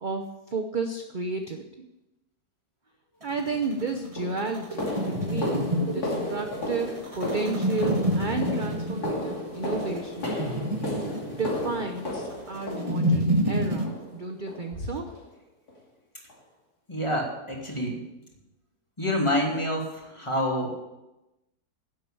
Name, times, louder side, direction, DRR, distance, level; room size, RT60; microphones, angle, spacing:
voice 1, 0.0-1.9 3.2-10.4 11.4-15.2, right 3 dB, 40° right, 5 dB, 0.8 m, -32 dB
sound 1, 3.2-13.9, equal, 20° right, 1.3 m, -29 dB
sound 2, 3.5-3.6 4.2-13.4 13.9-14.2 14.5-14.7 15.1-15.3 15.7-15.8 16.3-16.4, left 1 dB, 65° left, 3.2 m, -34 dB
voice 2, 16.9-18.0 19.0-20.8, left 1 dB, 15° left, -1 dB, 2.5 m, -27 dB
10.5 x 7.8 x 8.7 m, 0.97 s
omnidirectional pair, 1.7 m